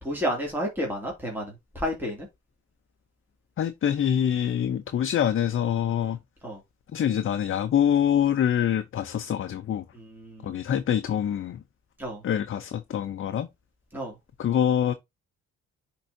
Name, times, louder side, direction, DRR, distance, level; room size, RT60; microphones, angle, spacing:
voice 1, 0.0-2.3 6.4-6.6 9.9-10.5 12.0-12.2 13.9-14.1, equal, 5° right, 2.4 m, -31 dB
voice 2, 3.6-6.2 6.9-9.8 10.4-11.6 12.2-13.5 14.4-14.9, left 9 dB, 45° left, 0.6 m, -25 dB
10.5 x 3.7 x 2.7 m
cardioid pair, 90°, 30 cm